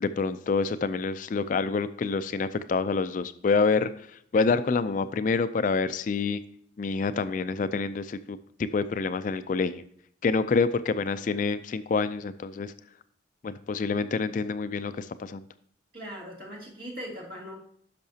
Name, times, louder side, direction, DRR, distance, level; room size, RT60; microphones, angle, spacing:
voice 1, 0.0-3.9 4.3-6.4 6.8-8.4 8.7-9.8 10.2-12.7 13.4-15.4, left 4 dB, 40° left, 13 dB, 0.3 m, -27 dB
voice 2, 15.9-17.6, equal, 50° right, -2 dB, 2.6 m, -40 dB
10.5 x 6.4 x 2.8 m, 0.65 s
head